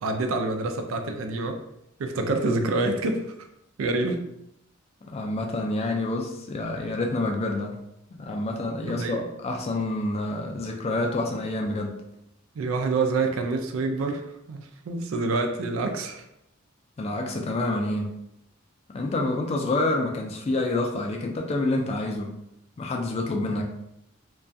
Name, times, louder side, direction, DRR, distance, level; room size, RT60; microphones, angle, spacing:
voice 1, 0.0-1.6 2.0-3.5 3.8-4.2 8.8-9.3 12.6-16.2, right 3 dB, 75° right, 6 dB, 0.4 m, -27 dB
voice 2, 5.0-7.8 8.1-12.0 17.0-18.2 18.9-22.4 22.8-23.6, left 2 dB, 30° left, 1 dB, 0.3 m, -28 dB
2.3 x 2.2 x 2.6 m, 0.80 s
head